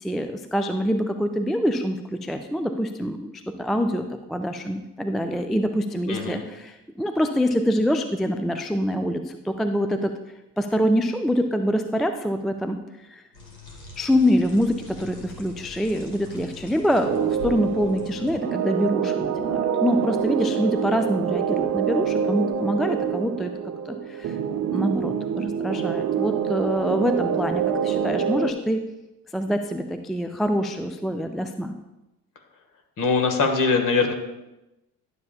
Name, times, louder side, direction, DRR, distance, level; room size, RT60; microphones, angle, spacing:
voice 1, 0.0-10.1 10.6-13.2 14.0-23.5 23.9-28.8 29.3-31.7, equal, ahead, 7 dB, 0.3 m, -25 dB
voice 2, 6.1-6.4 33.0-34.1, left 4 dB, 45° left, 4 dB, 1.6 m, -22 dB
sound 1, 13.3-18.3, left 3 dB, 75° left, 2.0 m, -43 dB
sound 2, 17.0-28.5, right 8 dB, 40° right, 0.7 m, -26 dB
11.5 x 6.9 x 2.4 m, 0.96 s
figure-of-eight pair, 50°, 44 cm